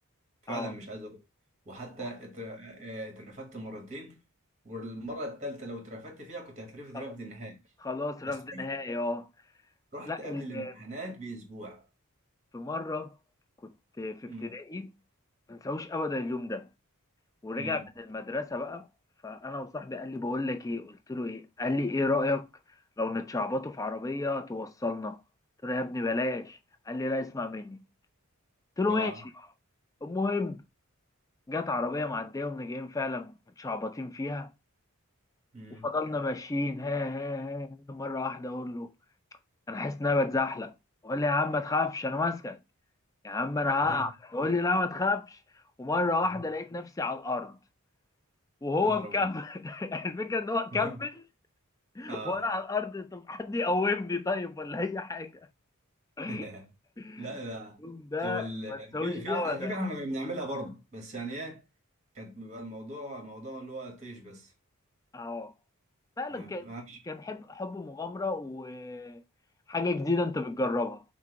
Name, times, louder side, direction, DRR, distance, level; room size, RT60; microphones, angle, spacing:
voice 1, 0.4-1.2 1.7-4.2 4.6-7.6 8.2-8.6 9.9-11.8 14.2-14.6 17.6-17.9 28.9-29.2 35.5-35.9 43.8-44.1 48.8-49.3 50.7-51.0 52.1-52.4 56.3-56.7 57.2-57.8 58.2-61.6 62.1-64.5 66.3-67.0, right 1 dB, 30° right, 1.3 m, -39 dB
voice 2, 7.8-9.3 10.1-10.7 12.5-13.1 13.6-14.9 15.5-16.7 17.4-18.9 19.2-22.5 23.0-25.2 25.6-26.6 26.9-27.8 28.8-29.3 30.0-30.6 31.5-34.5 35.8-38.9 39.7-40.7 41.0-42.6 43.2-45.4 45.8-47.6 48.6-51.2 52.0-55.4 56.2-56.5 57.0-57.3 57.8-59.7 65.1-65.5 66.2-66.6 67.1-69.2 69.7-71.0, left 3 dB, 15° left, 0.3 m, -31 dB
5.8 x 2.0 x 4.4 m
head